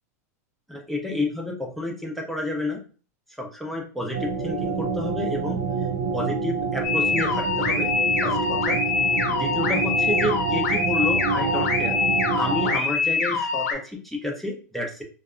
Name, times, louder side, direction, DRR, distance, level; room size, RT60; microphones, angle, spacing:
voice 1, 0.7-2.8 3.4-5.6 6.1-7.9 8.2-8.8 9.3-12.0 12.3-15.0, left 1 dB, ahead, 0 dB, 0.6 m, -30 dB
sound 1, 4.1-12.8, right 5 dB, 70° right, 0.4 m, -27 dB
sound 2, 6.8-13.7, left 5 dB, 80° left, 0.8 m, -24 dB
2.7 x 2.2 x 2.4 m, 0.37 s
hypercardioid pair, 120°, 9 cm